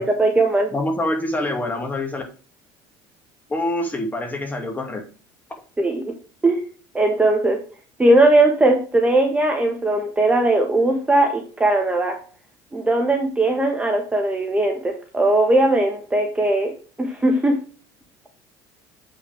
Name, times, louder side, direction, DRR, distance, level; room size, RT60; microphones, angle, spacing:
voice 1, 0.0-0.7 5.8-6.1 6.4-6.6 6.9-7.6 8.0-12.2 12.7-16.7 17.0-17.6, right 2 dB, 15° right, 2 dB, 1.4 m, -19 dB
voice 2, 0.7-2.2 3.5-5.0, left 1 dB, 15° left, 2 dB, 2.4 m, -25 dB
8.0 x 5.9 x 3.6 m, 0.38 s
supercardioid pair, 115°, 10 cm